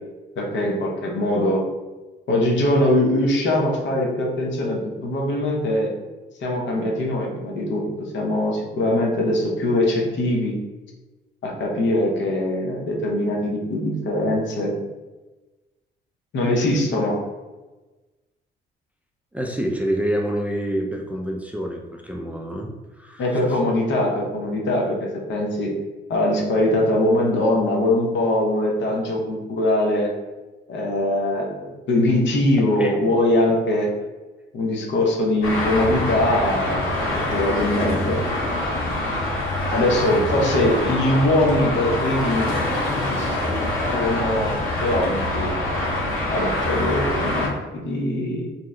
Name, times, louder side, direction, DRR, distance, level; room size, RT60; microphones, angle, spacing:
voice 1, 0.4-1.6 2.3-5.9 6.4-10.5 11.4-14.7 16.3-17.2 23.2-25.0 25.3-25.7 26.1-30.1 30.7-33.9 34.5-38.2 39.7-42.6 43.2-43.4 43.9-44.5 44.8-45.5 46.3-47.5 47.7-48.5, left 1 dB, 65° left, -1 dB, 0.8 m, -22 dB
voice 2, 19.3-22.7 23.0-23.4 32.8-33.0 38.6-38.7, right 1 dB, 5° right, 0 dB, 0.4 m, -27 dB
Traffic noise roadway noise, 35.4-47.5, left 1 dB, 85° left, 1.4 m, -25 dB
2.8 x 2.1 x 3.6 m, 1.2 s
cardioid pair, 90°, 20 cm